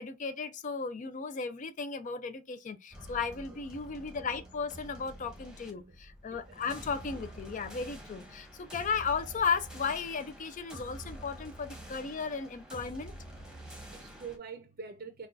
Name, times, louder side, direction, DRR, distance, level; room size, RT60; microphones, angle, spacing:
voice 1, 0.0-13.1, left 5 dB, 40° left, 0.4 m, -35 dB
sound 1, 2.9-14.4, right 1 dB, 5° right, 0.9 m, -48 dB
voice 2, 6.3-6.6 13.6-15.3, right 6 dB, 50° right, 0.5 m, -46 dB
6.0 x 2.3 x 2.5 m
head